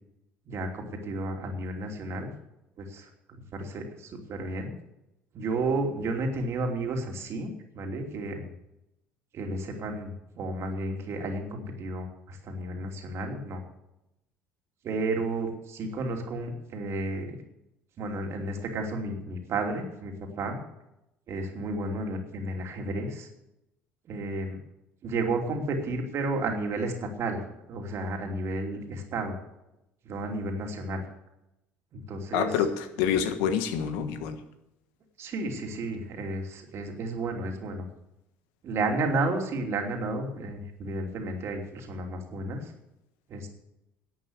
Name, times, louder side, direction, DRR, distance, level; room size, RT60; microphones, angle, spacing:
voice 1, 0.5-2.3 2.8-4.7 5.3-8.5 9.3-13.6 14.8-17.4 18.0-20.6 21.3-23.3 24.1-24.6 25.0-27.4 27.7-29.4 30.0-31.0 31.9-32.7 35.2-37.9 38.6-42.7 43.3-43.5, right 2 dB, 55° right, 3 dB, 2.9 m, -32 dB
voice 2, 32.3-34.4, left 8 dB, 80° left, 9 dB, 1.3 m, -27 dB
11.5 x 8.4 x 8.1 m, 0.89 s
hypercardioid pair, 70°, 5 cm